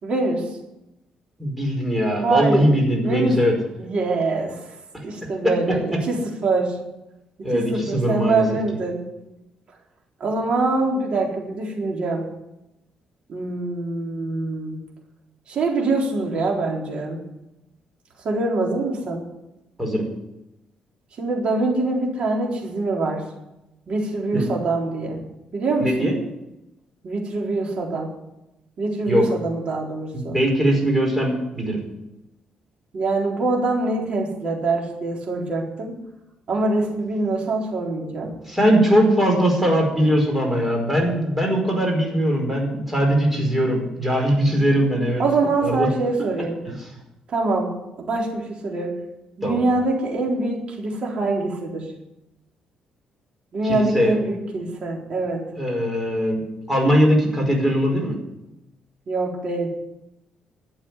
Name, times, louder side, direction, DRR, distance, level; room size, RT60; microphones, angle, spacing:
voice 1, 0.0-0.5 2.2-2.7 3.0-3.4 3.8-4.6 5.0-5.8 6.1-6.8 7.4-9.0 10.2-12.3 13.3-14.8 15.5-17.2 18.2-19.2 21.2-23.2 23.9-25.2 25.5-26.1 27.0-28.1 28.8-30.4 32.9-35.9 36.5-38.3 45.2-46.6 47.3-49.0 49.4-51.9 53.5-55.4 59.1-59.7, right 3 dB, 50° right, -1 dB, 4.1 m, -24 dB
voice 2, 1.4-3.5 5.4-5.5 7.4-8.5 19.8-20.0 24.3-24.4 25.8-26.1 29.1-29.2 30.3-31.8 38.5-45.2 45.6-45.9 46.6-46.7 49.4-49.6 53.6-54.1 55.6-58.1, equal, 10° right, 1 dB, 4.9 m, -20 dB
12.5 x 8.2 x 9.7 m, 0.93 s
cardioid pair, 125°, 2 cm